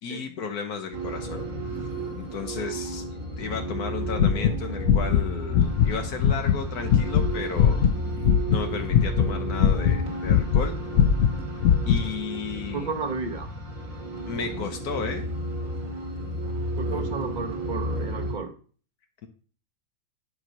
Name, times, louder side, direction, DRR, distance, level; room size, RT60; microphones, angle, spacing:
voice 1, 0.0-1.4 2.2-3.0 3.4-7.8 8.5-10.7 11.9-12.9 14.2-15.2, left 5 dB, 80° left, 1.5 m, -33 dB
sound 1, 0.9-18.3, right 1 dB, 60° right, 2.2 m, -33 dB
sound 2, 4.1-5.2 5.5-5.9 6.2-8.6 8.9-10.7 10.9-12.0, left 8 dB, 65° left, 0.8 m, -20 dB
voice 2, 12.5-13.5 16.8-18.5, right 4 dB, 35° right, 1.1 m, -33 dB
10.0 x 4.6 x 5.3 m
omnidirectional pair, 1.6 m